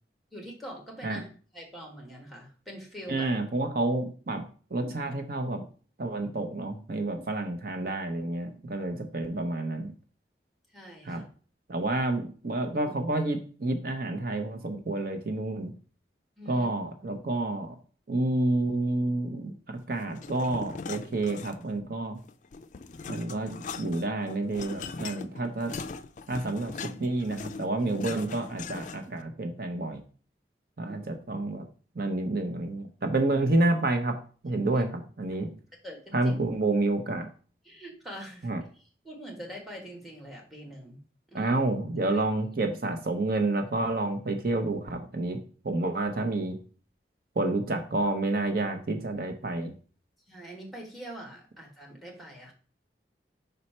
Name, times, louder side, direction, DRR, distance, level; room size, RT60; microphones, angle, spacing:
voice 1, 0.3-1.3 1.5-3.4 10.7-11.2 16.4-16.7 30.9-31.0 34.7-34.8 35.8-36.3 37.6-38.5 38.8-41.0 41.3-41.5 42.1-42.2 50.3-52.5, equal, ahead, 0 dB, 1.5 m, -44 dB
voice 2, 3.1-4.4 4.7-5.6 6.0-9.9 11.0-11.2 11.7-15.7 16.5-17.8 18.1-19.5 19.9-22.2 23.1-25.7 26.3-30.0 30.8-31.6 32.0-34.2 34.4-34.9 35.2-35.5 36.1-37.3 38.4-38.6 41.3-45.4 45.6-46.6 47.4-49.7, right 2 dB, 55° right, 5 dB, 0.7 m, -29 dB
sound 1, 20.1-21.8 22.2-29.2, left 4 dB, 45° left, 0.4 m, -40 dB
5.4 x 4.2 x 4.3 m, 0.40 s
head